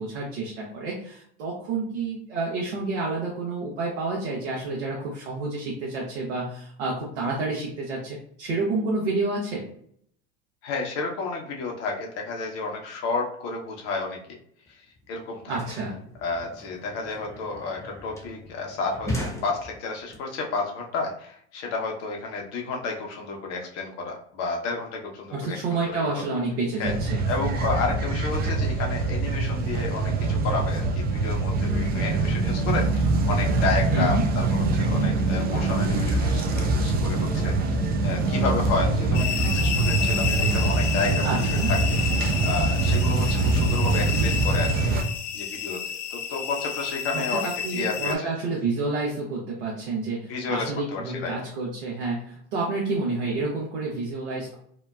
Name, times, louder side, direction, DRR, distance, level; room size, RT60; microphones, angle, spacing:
voice 1, 0.0-9.6 15.5-15.9 25.3-27.2 33.9-34.2 41.2-41.7 47.1-54.6, right 3 dB, 80° right, -4 dB, 0.8 m, -29 dB
voice 2, 10.6-14.2 14.7-14.8 15.1-15.6 16.2-25.6 25.9-26.1 26.8-27.0 27.3-37.8 38.0-41.3 41.7-41.8 42.2-44.7 45.3-45.8 46.1-48.3 50.3-51.4, left 4 dB, 45° left, 1 dB, 0.8 m, -31 dB
sound 1, 14.7-14.8 15.0-20.1, equal, 10° left, 0.8 m, -37 dB
sound 2, 26.8-45.0, right 3 dB, 30° right, 0.4 m, -24 dB
sound 3, 39.1-48.2, left 8 dB, 80° left, 0.5 m, -31 dB
2.9 x 2.1 x 2.3 m, 0.64 s
hypercardioid pair, 85°, 35 cm